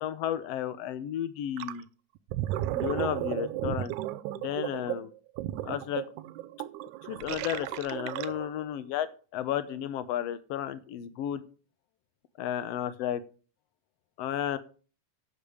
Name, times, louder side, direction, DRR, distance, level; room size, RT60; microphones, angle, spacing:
voice 1, 0.0-1.9 2.7-3.9 4.3-5.1 5.6-6.0 7.1-9.1 9.3-11.4 12.4-13.2 14.2-14.6, left 11 dB, 75° left, 12 dB, 1.5 m, -33 dB
Gurgling, 1.6-1.8 2.2-8.6, right 14 dB, 75° right, 1.9 m, -34 dB
8.6 x 7.2 x 6.3 m, 0.37 s
omnidirectional pair, 3.7 m